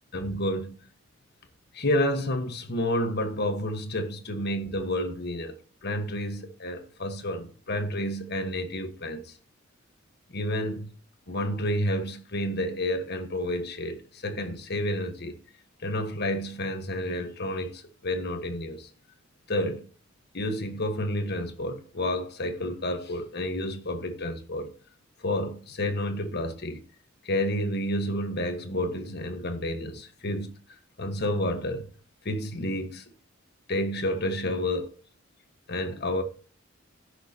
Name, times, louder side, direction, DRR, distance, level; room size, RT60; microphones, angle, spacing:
voice 1, 0.1-0.7 1.7-5.5 5.8-9.2 10.3-10.9 11.3-15.4 15.8-18.9 19.5-19.8 20.3-24.7 25.2-26.8 27.2-30.5 31.0-31.9 32.2-33.0 33.7-34.9 35.7-36.2, left 1 dB, 55° left, 1.5 m, -30 dB
16.0 x 6.4 x 2.9 m
head